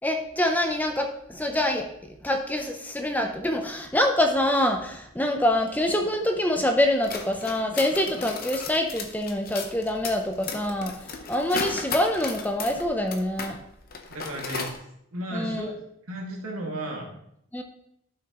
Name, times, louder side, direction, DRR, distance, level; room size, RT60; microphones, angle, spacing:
voice 1, 0.0-1.9 2.2-10.9 11.3-13.6 15.3-15.7 17.5-17.6, left 1 dB, 5° left, 4 dB, 0.5 m, -25 dB
sound 1, 6.9-13.6 13.8-14.8, left 5 dB, 40° left, 0.8 m, -35 dB
voice 2, 14.1-14.8 15.1-15.7 16.1-17.1, right 1 dB, 75° right, -1 dB, 2.0 m, -34 dB
11.5 x 6.1 x 3.0 m, 0.75 s
head